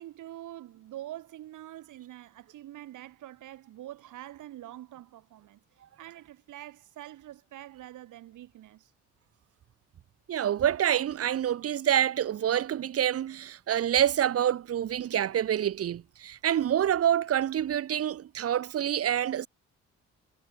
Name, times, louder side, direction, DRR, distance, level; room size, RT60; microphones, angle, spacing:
voice 1, 0.0-5.6 6.0-8.9, right 13 dB, 80° right, 4.8 m, -45 dB
voice 2, 10.3-19.5, right 10 dB, 50° right, 0.8 m, -27 dB
cardioid pair, 90°, 30 cm